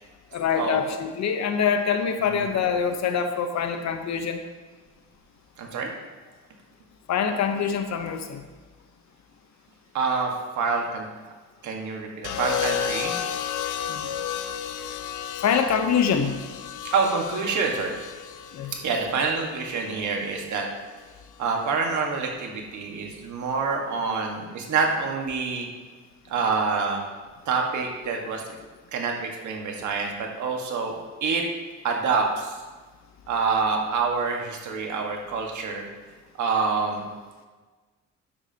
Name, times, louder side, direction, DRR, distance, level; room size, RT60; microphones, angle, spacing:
voice 1, 0.3-4.4 7.1-8.4 13.9-14.1 15.4-16.3 18.5-18.7, left 7 dB, 65° left, 7 dB, 0.9 m, -25 dB
voice 2, 5.6-5.9 9.9-10.3 10.6-11.0 11.6-13.1 16.8-17.9 18.8-20.7 21.4-25.7 26.3-27.0 27.4-28.6 28.9-31.4 31.8-32.6 33.3-35.8 36.4-37.1, right 4 dB, 70° right, 1 dB, 1.6 m, -26 dB
sound 1, 12.2-20.4 21.6-22.0, left 8 dB, 85° left, 0.6 m, -33 dB
9.8 x 7.4 x 2.9 m, 1.3 s
cardioid pair, 90°, 30 cm